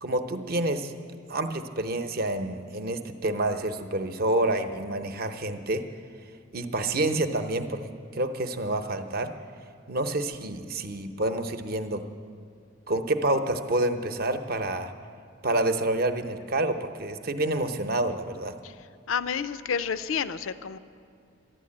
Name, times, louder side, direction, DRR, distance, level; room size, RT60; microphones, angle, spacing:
voice 1, 0.0-0.9 1.3-5.8 6.5-9.3 9.9-12.0 12.9-14.9 15.4-18.5, right 2 dB, 50° right, 7 dB, 0.8 m, -28 dB
voice 2, 19.1-20.8, left 7 dB, 85° left, 14 dB, 0.5 m, -30 dB
12.5 x 11.5 x 8.6 m, 2.4 s
head